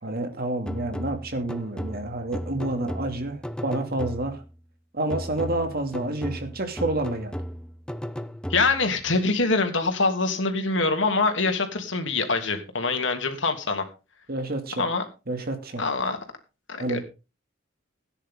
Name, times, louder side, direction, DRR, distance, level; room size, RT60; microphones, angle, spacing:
voice 1, 0.0-4.4 4.9-7.4 14.3-14.9 15.3-15.8 16.8-17.0, right 2 dB, 55° right, 6 dB, 2.6 m, -29 dB
sound 1, 0.7-4.5 5.1-9.0, equal, 5° left, 0.8 m, -35 dB
voice 2, 8.5-13.9 14.8-15.0 15.8-16.2 16.8-17.0, left 3 dB, 70° left, 5 dB, 2.9 m, -24 dB
17.0 x 10.0 x 3.8 m, 0.30 s
head